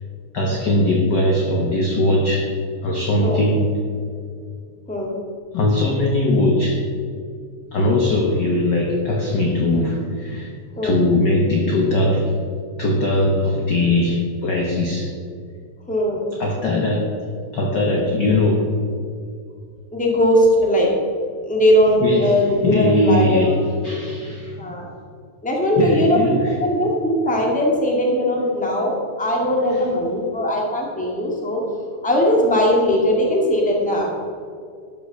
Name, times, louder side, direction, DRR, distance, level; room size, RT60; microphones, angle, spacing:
voice 1, 0.3-2.5 2.8-3.6 5.5-6.8 7.7-10.5 10.8-12.3 12.8-15.1 16.4-17.2 17.5-18.7 22.0-24.7 25.8-26.6, left 1 dB, 60° left, 1 dB, 1.1 m, -20 dB
voice 2, 15.9-16.2 19.9-20.9 21.4-23.6 24.6-24.9 25.4-31.6 32.0-34.1, equal, 5° left, -2 dB, 1.4 m, -19 dB
12.5 x 5.8 x 6.6 m, 2.2 s
omnidirectional pair, 3.3 m